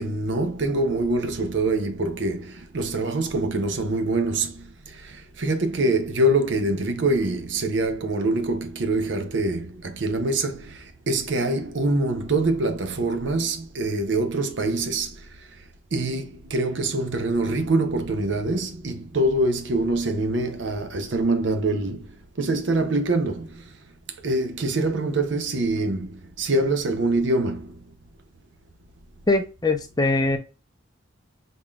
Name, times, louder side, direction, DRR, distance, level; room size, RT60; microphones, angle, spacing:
voice 1, 0.0-15.2 15.9-22.1 22.4-23.6 24.2-27.7, right 2 dB, 65° right, 0.6 m, -24 dB
voice 2, 29.3-30.4, left 2 dB, 20° left, 0.6 m, -22 dB
3.8 x 3.6 x 2.3 m
head